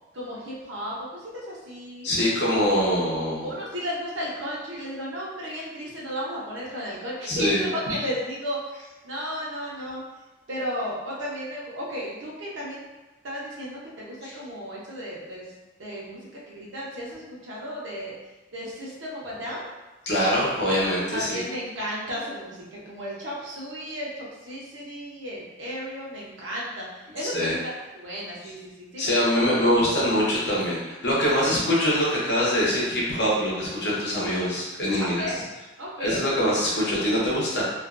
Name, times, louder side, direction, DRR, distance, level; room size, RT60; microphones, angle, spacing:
voice 1, 0.1-2.1 2.9-3.2 3.4-8.7 9.0-10.0 10.5-12.9 13.2-15.5 15.8-18.1 18.5-19.7 21.1-29.4 29.9-30.0 35.0-35.4 35.8-36.5, equal, 90° right, -5 dB, 0.7 m, -34 dB
voice 2, 2.0-3.5 7.3-7.7 14.2-14.3 20.1-21.4 27.3-27.5 29.0-35.2 36.0-37.6, equal, 65° left, -6 dB, 0.8 m, -23 dB
2.4 x 2.2 x 2.4 m, 1.1 s
head